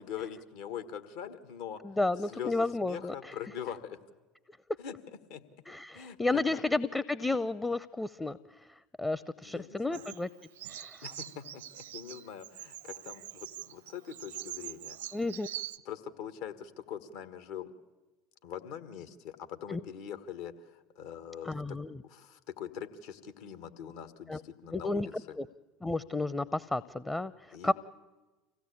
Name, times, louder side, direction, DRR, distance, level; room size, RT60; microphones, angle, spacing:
voice 1, 0.0-1.8 2.3-4.0 4.8-4.9 5.3-5.4 5.9-6.6 9.4-10.0 11.0-15.0 15.8-17.7 18.4-21.5 22.0-25.4 27.5-27.7, left 8 dB, 65° left, 9 dB, 1.5 m, -43 dB
voice 2, 1.8-3.3 5.7-8.4 9.0-10.3 10.7-11.0 15.1-15.5 19.7-19.8 21.5-22.0 24.3-24.4 24.7-25.1 25.4-25.5 25.8-27.7, left 2 dB, 15° left, 15 dB, 0.7 m, -32 dB
Bird vocalization bird call bird song, 9.9-15.8, right 12 dB, 75° right, 0.7 m, -44 dB
25.0 x 16.0 x 8.6 m, 1.2 s
hypercardioid pair, 75°, 0 cm